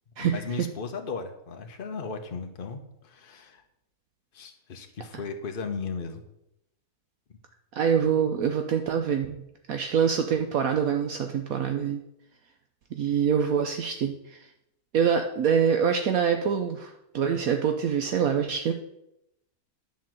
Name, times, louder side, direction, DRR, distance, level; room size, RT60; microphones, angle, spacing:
voice 1, 0.2-3.6 4.3-6.2, left 4 dB, 40° left, 4 dB, 1.1 m, -36 dB
voice 2, 7.8-9.4 9.7-12.0 12.9-14.4 14.9-18.7, right 7 dB, 70° right, 6 dB, 1.1 m, -25 dB
10.5 x 4.6 x 7.6 m, 0.83 s
omnidirectional pair, 1.7 m